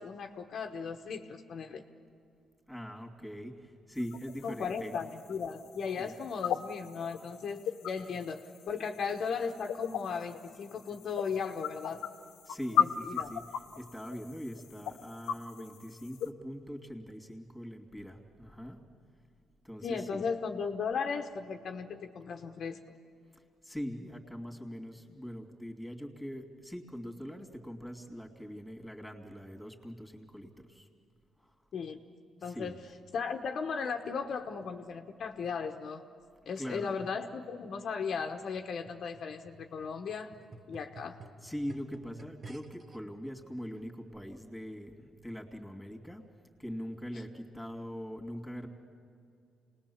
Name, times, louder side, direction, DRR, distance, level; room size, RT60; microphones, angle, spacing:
voice 1, 0.0-1.8 4.4-12.0 12.8-13.3 19.8-22.8 31.7-32.0 32.4-32.8 33.1-36.0 36.5-40.3 40.7-41.2, left 5 dB, 60° left, 4 dB, 1.1 m, -36 dB
voice 2, 2.7-5.0 6.0-6.1 12.4-18.8 19.6-20.2 23.3-30.9 31.4-31.5 32.4-32.8 36.6-37.0 41.4-46.2 46.6-48.7, equal, ahead, 2 dB, 2.8 m, -42 dB
sound 1, 4.0-16.3, left 9 dB, 85° left, 0.9 m, -37 dB
sound 2, 38.6-43.0 43.7-43.8, right 3 dB, 40° right, 1.5 m, -52 dB
27.5 x 19.5 x 7.2 m, 2.4 s
cardioid pair, 90°, 0 cm